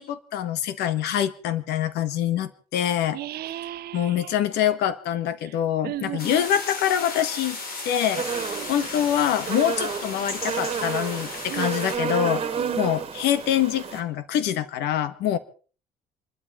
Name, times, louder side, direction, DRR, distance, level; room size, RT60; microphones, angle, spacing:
voice 1, 0.0-3.2 3.9-7.6 7.8-8.2 8.7-12.4 12.8-15.4, left 10 dB, 85° left, 14 dB, 1.5 m, -25 dB
voice 2, 3.1-4.3 5.4-5.5 5.8-6.5 8.3-8.9 11.5-11.7 12.5-12.9, right 14 dB, 70° right, 13 dB, 1.0 m, -35 dB
sound 1, 6.2-12.0, left 3 dB, 60° left, 5.5 m, -35 dB
sound 2, 8.2-14.0, right 6 dB, 35° right, 2.2 m, -31 dB
27.5 x 12.5 x 4.3 m, 0.39 s
cardioid pair, 110°, 17 cm